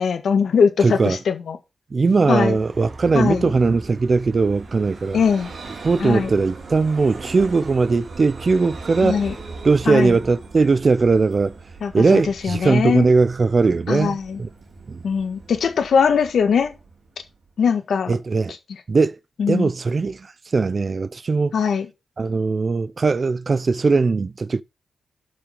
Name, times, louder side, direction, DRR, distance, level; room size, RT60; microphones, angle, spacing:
voice 1, 0.0-1.6 2.3-2.6 3.1-3.5 5.1-5.5 6.0-6.3 9.0-9.3 9.8-10.2 11.8-13.1 13.9-14.4 15.0-16.7 17.6-18.1 19.4-19.7 21.5-21.9, left 6 dB, 75° left, 1.7 m, -21 dB
voice 2, 0.8-1.2 1.9-5.2 5.8-9.2 9.6-11.5 11.9-14.5 14.9-15.0 18.1-18.5 18.9-19.2 19.5-21.5 22.2-24.6, right 4 dB, 45° right, 0.5 m, -19 dB
Vehicle, 2.1-17.6, right 3 dB, 65° right, 3.2 m, -39 dB
8.5 x 5.8 x 5.4 m
cardioid pair, 65°, 0 cm